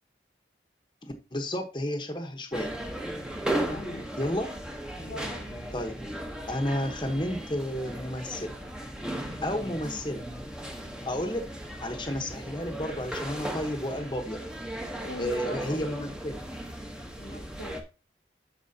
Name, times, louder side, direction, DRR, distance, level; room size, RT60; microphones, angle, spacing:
voice 1, 1.0-2.7 4.2-4.5 5.7-5.9 6.4-8.5 9.4-10.2 11.0-11.4 11.8-14.4 15.2-16.4, left 1 dB, 25° left, 4 dB, 1.1 m, -31 dB
sound 1, 2.5-17.8, right 1 dB, 5° right, 1.1 m, -36 dB
voice 2, 3.7-4.1 5.0-5.6 15.0-15.9 17.2-17.8, left 1 dB, 60° left, 4 dB, 0.9 m, -41 dB
13.0 x 4.8 x 2.8 m, 0.30 s
head